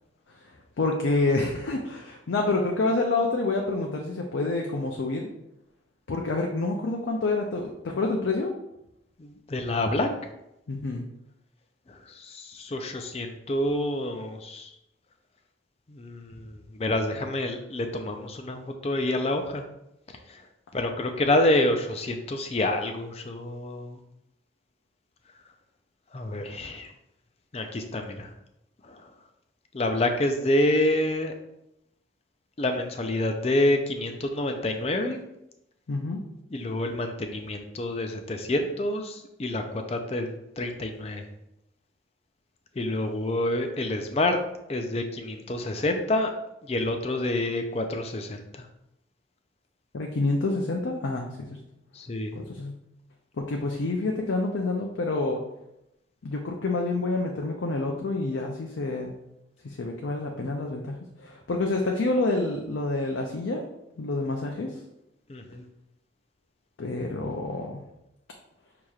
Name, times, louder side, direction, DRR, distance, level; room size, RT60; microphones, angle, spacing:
voice 1, 0.8-5.3 6.1-8.5 10.7-11.0 35.9-36.2 49.9-51.6 52.4-52.7 53.4-55.4 56.2-59.2 59.6-63.6 64.0-64.8 66.8-67.8, left 2 dB, 85° left, 1 dB, 0.5 m, -28 dB
voice 2, 9.2-10.1 11.9-14.7 15.9-19.6 20.3-20.4 20.7-24.0 26.1-26.9 27.5-28.3 28.8-29.0 29.7-31.3 32.6-35.2 36.5-41.2 42.8-44.4 44.7-46.3 46.7-48.7 51.9-52.4 65.3-65.7, left 1 dB, 35° left, 5 dB, 0.4 m, -28 dB
6.3 x 2.9 x 2.4 m, 0.86 s
head